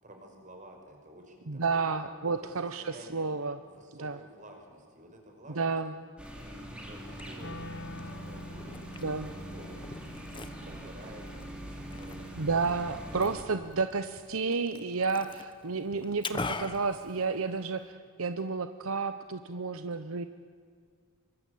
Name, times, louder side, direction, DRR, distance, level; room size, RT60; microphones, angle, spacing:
voice 1, 0.0-1.9 2.4-2.5 2.8-3.3 3.6-5.8 6.3-9.9 10.3-12.7 15.1-15.3, right 1 dB, 35° right, 2 dB, 5.6 m, -52 dB
voice 2, 1.5-3.6 4.0-4.2 5.6-5.9 9.0-9.3 12.4-20.3, right 4 dB, 75° right, 10 dB, 0.9 m, -31 dB
sound 1, 6.2-13.4, right 1 dB, 5° right, 3.4 m, -43 dB
Liquid, 6.9-17.9, left 3 dB, 20° left, 1.1 m, -44 dB
Wind instrument woodwind instrument, 7.4-13.5, left 1 dB, 55° left, 1.1 m, -48 dB
25.5 x 24.0 x 8.6 m, 2.1 s
head